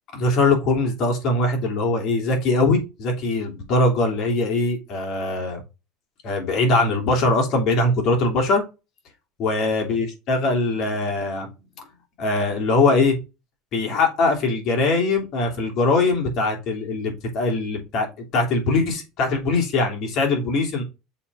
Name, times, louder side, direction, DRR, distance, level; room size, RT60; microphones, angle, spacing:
voice 1, 0.1-5.6 6.2-8.6 9.4-11.5 12.2-13.2 13.7-20.8, left 2 dB, 45° left, 2.9 m, -21 dB
6.9 x 3.6 x 4.8 m
cardioid pair, 155°, 0 cm